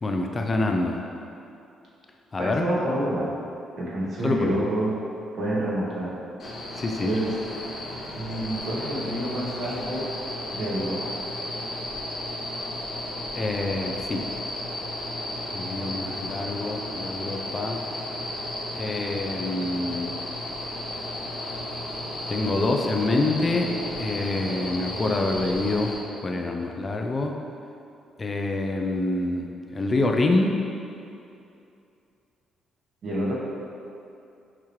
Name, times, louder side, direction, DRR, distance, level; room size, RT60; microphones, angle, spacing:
voice 1, 0.0-1.0 2.3-2.6 4.2-4.6 6.8-7.1 13.4-14.2 15.5-17.8 18.7-20.1 22.3-26.0 26.2-27.3 28.2-30.5, left 2 dB, 30° left, 2 dB, 0.4 m, -26 dB
voice 2, 2.4-3.4 3.8-5.0 5.3-6.1 7.0-7.3 8.1-10.1 10.5-11.1 33.0-33.4, right 1 dB, 60° right, -6 dB, 1.2 m, -28 dB
sound 1, 6.4-25.9, left 1 dB, 60° left, 1.3 m, -34 dB
5.8 x 2.9 x 3.1 m, 2.7 s
cardioid pair, 90°, 0 cm